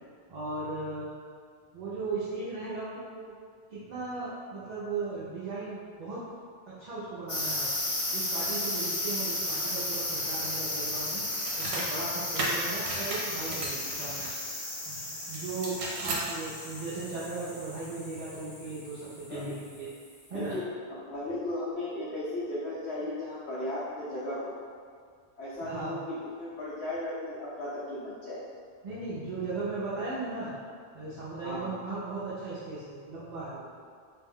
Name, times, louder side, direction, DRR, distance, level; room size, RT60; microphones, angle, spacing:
voice 1, 0.3-1.1 1.7-3.4 3.7-6.2 6.7-7.7 8.1-11.2 11.6-14.3 14.9-19.9 20.3-20.6 25.6-26.0 28.8-30.5 30.9-33.6, right 3 dB, 50° right, -10 dB, 0.6 m, -37 dB
sound 1, 7.3-19.6, left 1 dB, 40° left, 0.5 m, -34 dB
sound 2, 11.3-11.9 12.4-14.3 15.3-16.3, right 2 dB, 80° right, 0.9 m, -35 dB
voice 2, 20.3-24.6 25.4-28.4 31.4-31.8, left 1 dB, 75° left, -9 dB, 0.9 m, -36 dB
2.5 x 2.1 x 3.5 m, 2.1 s
omnidirectional pair, 1.1 m